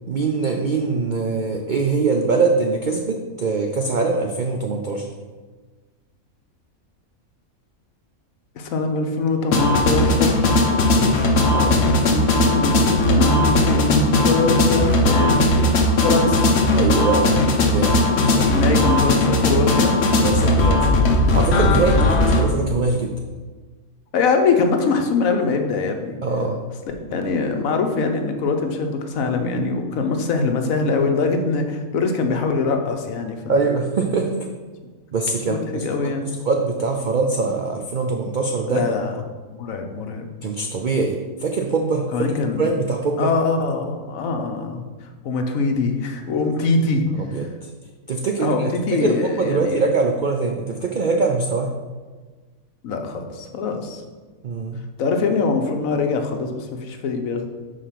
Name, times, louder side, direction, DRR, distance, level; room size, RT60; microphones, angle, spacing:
voice 1, 0.1-5.1 11.0-11.2 16.7-17.3 17.7-18.0 18.3-18.6 20.2-21.0 21.3-23.1 26.2-26.6 33.5-34.4 35.1-36.2 36.5-38.8 40.4-43.3 47.3-47.7 48.1-51.7 54.4-54.8, right 4 dB, 70° right, 3 dB, 0.4 m, -23 dB
voice 2, 8.5-10.5 11.4-15.5 16.0-16.5 18.5-20.0 21.8-22.1 24.1-26.2 27.1-33.5 35.5-36.3 38.7-39.1 39.5-40.3 42.1-42.8 43.2-47.0 47.4-47.5 48.4-49.8 52.8-54.0 55.0-57.5, left 4 dB, 75° left, 5 dB, 1.2 m, -23 dB
sound 1, 9.5-22.4, left 2 dB, 55° left, 1.0 m, -18 dB
5.0 x 4.9 x 5.7 m, 1.4 s
omnidirectional pair, 1.5 m